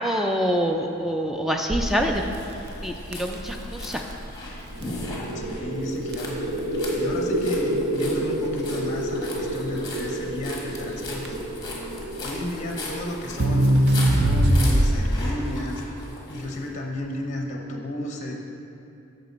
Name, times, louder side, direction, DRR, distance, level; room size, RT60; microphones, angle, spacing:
voice 1, 0.0-2.2 2.8-4.0, equal, ahead, 3 dB, 0.3 m, -25 dB
Crackle, 1.7-15.3, right 1 dB, 50° right, 0.5 m, -25 dB
sound 1, 1.8-16.6, left 2 dB, 20° left, 1.3 m, -39 dB
sound 2, 4.7-16.2, right 1 dB, 80° right, 1.6 m, -31 dB
voice 2, 5.3-6.4 7.0-11.4 12.2-15.8 16.3-18.3, left 1 dB, 35° left, 1 dB, 0.8 m, -33 dB
9.5 x 6.6 x 4.1 m, 2.8 s
head